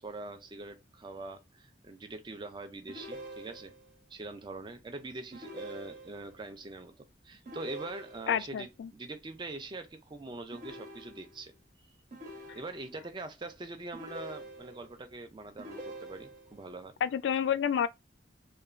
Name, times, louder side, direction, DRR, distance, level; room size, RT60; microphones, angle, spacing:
voice 1, 0.0-3.7 4.1-11.5 12.5-16.9, right 2 dB, 25° right, 0.4 m, -43 dB
sound 1, 2.9-3.9 5.3-6.4 7.5-8.5 10.5-11.5 12.1-13.1 13.9-15.0 15.6-16.6, right 1 dB, 45° right, 0.9 m, -45 dB
voice 2, 8.3-8.9 17.0-17.9, left 8 dB, 75° left, 0.3 m, -29 dB
3.0 x 2.2 x 2.4 m
head